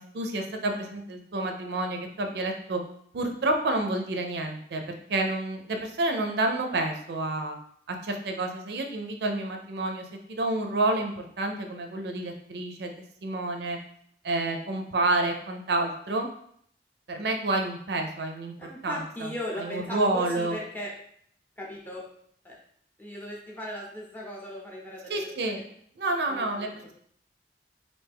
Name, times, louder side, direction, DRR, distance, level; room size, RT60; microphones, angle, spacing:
voice 1, 0.0-2.8 3.1-7.6 7.9-12.9 13.2-13.8 14.2-16.3 17.1-18.5 18.8-19.0 19.6-20.6 25.1-25.7 26.0-26.7, right 2 dB, 70° right, 4 dB, 0.4 m, -29 dB
voice 2, 18.6-20.9 21.6-22.0 22.4-22.6 23.0-25.5 26.3-26.7, left 1 dB, 10° left, -4 dB, 0.6 m, -37 dB
3.3 x 2.5 x 3.4 m, 0.66 s
head